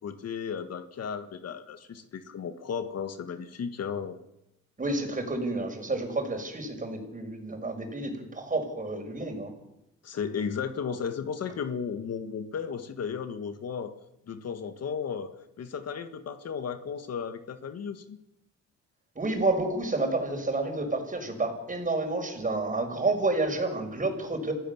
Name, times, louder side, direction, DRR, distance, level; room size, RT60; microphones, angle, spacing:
voice 1, 0.0-4.2 10.0-13.9 14.3-18.2, left 6 dB, 55° left, 10 dB, 1.7 m, -34 dB
voice 2, 4.8-9.5 19.2-24.5, right 2 dB, 25° right, 5 dB, 6.0 m, -30 dB
27.0 x 16.0 x 7.2 m, 0.86 s
cardioid pair, 90°, 30 cm